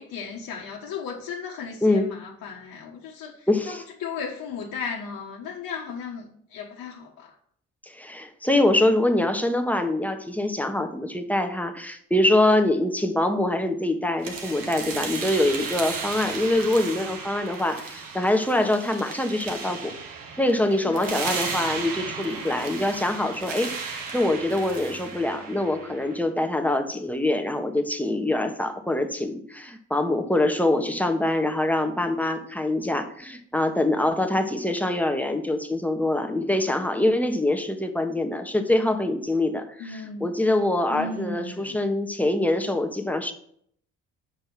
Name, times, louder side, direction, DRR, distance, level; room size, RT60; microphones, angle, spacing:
voice 1, 0.0-3.8 4.0-7.3 20.8-21.1 39.8-40.3 40.9-41.8, left 5 dB, 65° left, -2 dB, 1.4 m, -35 dB
voice 2, 1.8-2.1 3.5-3.8 7.9-19.9 20.4-23.7 24.1-43.3, left 1 dB, 5° left, 5 dB, 1.4 m, -24 dB
sound 1, 14.2-26.2, right 5 dB, 70° right, 1.7 m, -35 dB
7.6 x 5.2 x 6.0 m, 0.65 s
supercardioid pair, 60°, 35 cm